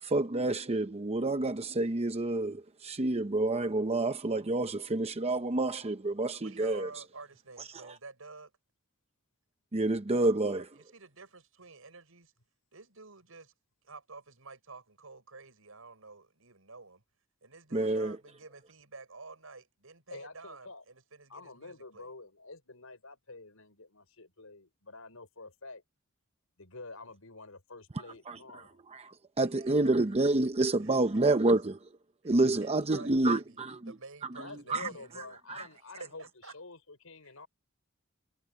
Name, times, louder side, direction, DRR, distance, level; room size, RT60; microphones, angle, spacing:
voice 1, 0.0-6.9 9.7-10.7 17.7-18.2 28.3-28.6 28.9-31.8 32.2-33.9 34.7-34.9 35.5-35.7, right 2 dB, 30° right, 0.7 m, -28 dB
voice 2, 6.4-8.5 10.5-12.3 12.7-13.5 13.8-17.0 17.4-22.1 29.4-30.0 30.8-31.3 32.2-32.4 32.6-33.6 33.9-35.4 36.0-36.5 37.2-37.3, right 3 dB, 75° right, 6.4 m, -50 dB
voice 3, 20.1-20.8 21.3-25.8 26.6-28.8 34.4-36.2 36.5-37.5, left 3 dB, 85° left, 5.7 m, -48 dB
head